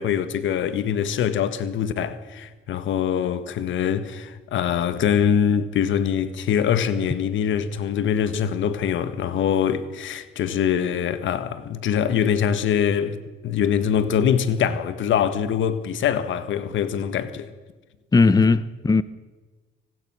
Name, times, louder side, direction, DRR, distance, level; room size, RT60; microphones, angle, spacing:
voice 1, 0.0-13.2 13.4-17.5, left 8 dB, 75° left, 1.6 m, -23 dB
voice 2, 18.1-19.0, left 4 dB, 20° left, 0.7 m, -17 dB
24.5 x 19.0 x 6.2 m
cardioid pair, 90°, 20 cm